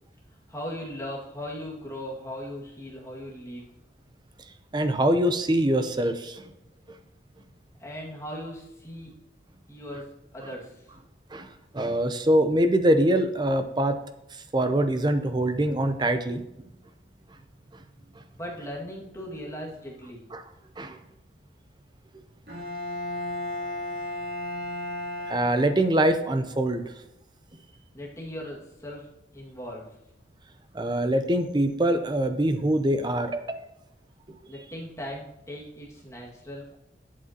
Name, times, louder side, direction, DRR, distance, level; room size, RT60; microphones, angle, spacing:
voice 1, 0.5-3.7 7.8-9.1 9.7-11.0 18.3-20.3 27.9-29.1 29.3-30.0 34.5-36.8, equal, 15° left, -4 dB, 1.9 m, -38 dB
voice 2, 4.7-6.4 11.3-14.0 14.3-16.4 20.3-20.4 20.8-21.0 25.3-26.9 30.7-33.6 34.3-34.4, right 1 dB, 25° right, 8 dB, 0.6 m, -24 dB
Bowed string instrument, 22.5-26.2, left 1 dB, 60° right, 2.8 m, -34 dB
12.0 x 7.6 x 2.9 m, 0.88 s
head